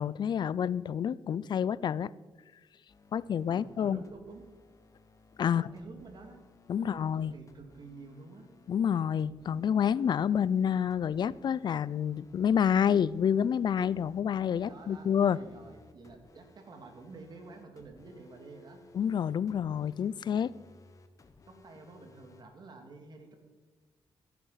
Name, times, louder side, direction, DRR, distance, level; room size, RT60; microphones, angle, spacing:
voice 1, 0.0-2.1 3.1-4.0 5.4-5.7 6.7-7.3 8.7-15.4 18.9-20.5, left 8 dB, 50° left, 20 dB, 0.4 m, -28 dB
sound 1, 2.9-22.4, left 3 dB, 35° left, 1.3 m, -59 dB
voice 2, 3.5-4.5 5.4-6.4 6.8-8.5 14.6-18.8 21.5-23.3, right 3 dB, 50° right, 5 dB, 2.5 m, -50 dB
14.0 x 11.0 x 5.7 m, 1.3 s
cardioid pair, 115°, 9 cm